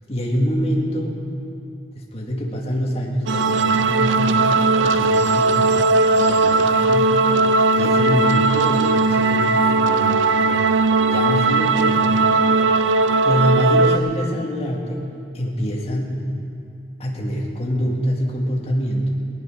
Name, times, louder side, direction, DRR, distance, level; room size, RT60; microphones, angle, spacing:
voice 1, 0.1-1.2 1.9-5.9 6.1-7.2 7.8-10.6 11.1-13.0 13.2-15.1 15.3-16.2 17.0-19.1, equal, 30° left, -2 dB, 1.9 m, -25 dB
sound 1, 3.3-14.0, right 3 dB, 80° right, 0.5 m, -18 dB
18.0 x 11.0 x 6.2 m, 2.7 s
head